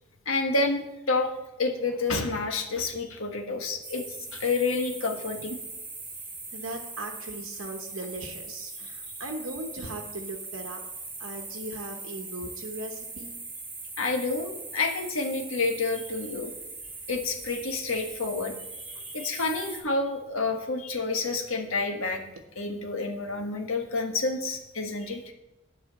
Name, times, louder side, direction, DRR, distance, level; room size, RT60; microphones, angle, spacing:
voice 1, 0.2-1.3 1.6-5.6 14.0-16.5 17.1-18.5 18.9-22.2 22.6-25.3, left 3 dB, 75° left, 3 dB, 1.5 m, -29 dB
sound 1, 3.8-19.8, right 3 dB, 10° right, 2.6 m, -40 dB
voice 2, 6.5-10.8 11.2-13.3, right 2 dB, 75° right, 3 dB, 1.0 m, -38 dB
10.5 x 4.9 x 7.5 m, 0.96 s
head